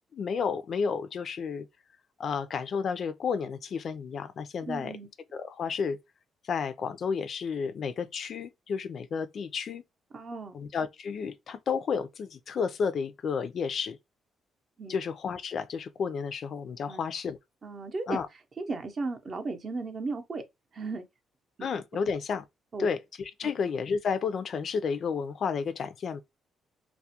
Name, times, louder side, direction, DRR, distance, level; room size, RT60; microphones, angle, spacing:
voice 1, 0.1-1.7 2.2-4.9 5.3-6.0 6.4-9.8 10.5-14.0 14.9-17.4 18.1-18.3 21.6-22.4 22.8-26.2, left 6 dB, 55° left, 0.3 m, -31 dB
voice 2, 4.7-5.1 10.1-10.6 14.8-15.0 16.9-17.0 17.6-18.2 18.6-20.4 20.7-21.1 22.7-22.9, right 3 dB, 45° right, 0.6 m, -35 dB
2.3 x 2.1 x 2.7 m
cardioid pair, 90°, 0 cm